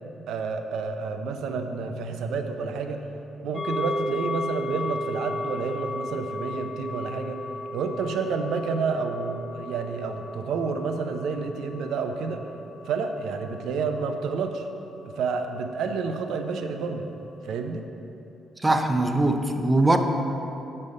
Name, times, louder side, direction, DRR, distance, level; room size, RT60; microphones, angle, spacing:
voice 1, 0.3-3.1 3.4-7.4 7.7-12.4 12.9-14.7 15.2-17.1 17.4-17.8, right 4 dB, 80° right, 6 dB, 0.6 m, -29 dB
sound 1, 3.5-15.2 15.6-15.7, left 1 dB, 30° left, 0.8 m, -35 dB
voice 2, 18.6-20.0, right 2 dB, 15° right, 6 dB, 0.5 m, -21 dB
7.9 x 5.5 x 5.3 m, 3.0 s
cardioid pair, 90°, 0 cm